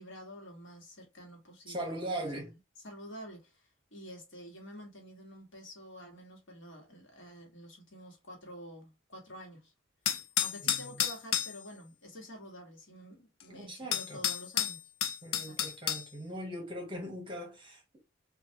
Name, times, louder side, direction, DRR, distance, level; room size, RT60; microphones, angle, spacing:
voice 1, 0.0-2.6 2.8-9.7 10.4-14.9 15.3-15.6, equal, 65° left, 1.3 m, -49 dB
voice 2, 1.7-2.5 10.6-10.7 13.5-14.2 15.2-17.8, right 1 dB, 25° right, 1.2 m, -39 dB
sound 1, 10.1-11.6 13.4-13.5 13.9-16.1, left 10 dB, 80° left, 0.4 m, -31 dB
3.2 x 2.5 x 2.7 m
head